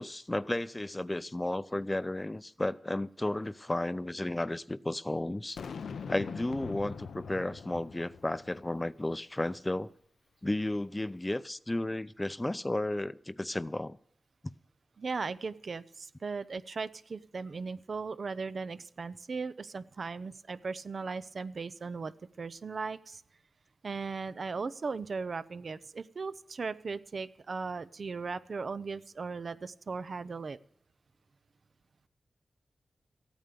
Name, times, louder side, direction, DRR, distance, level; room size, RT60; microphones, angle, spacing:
voice 1, 0.0-5.6 6.1-9.9 10.4-14.0, left 1 dB, 20° left, 0.5 m, -33 dB
Boom, 5.6-8.9, left 6 dB, 85° left, 0.6 m, -42 dB
voice 2, 15.0-23.2 23.8-30.6, right 4 dB, 65° right, 0.7 m, -37 dB
14.0 x 9.1 x 6.9 m
cardioid pair, 50°, 0 cm